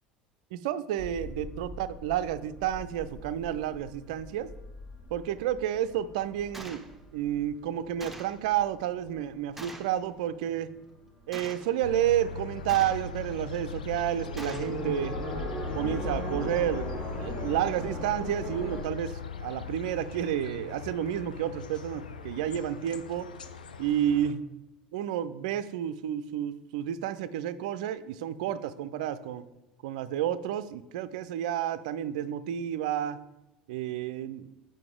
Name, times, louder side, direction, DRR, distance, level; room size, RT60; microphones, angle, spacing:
voice 1, 0.5-4.5 5.1-6.9 7.1-10.7 11.3-15.2 15.7-16.9 17.2-23.3 23.8-24.4 24.9-29.5 29.8-33.2 33.7-34.5, right 11 dB, 60° right, 14 dB, 0.3 m, -30 dB
sound 1, 1.0-9.9 10.2-10.9 11.2-11.4 11.7-18.8, equal, 40° left, 1.7 m, -39 dB
Gunshot gunfire, 6.5-6.9 8.0-8.4 9.6-10.0 11.3-11.7 12.7-13.2 14.4-14.8, right 1 dB, 5° right, 0.7 m, -43 dB
sound 2, 11.8-24.3, left 5 dB, 75° left, 0.4 m, -40 dB
7.5 x 5.1 x 3.6 m, 0.96 s
figure-of-eight pair, 70°, 5 cm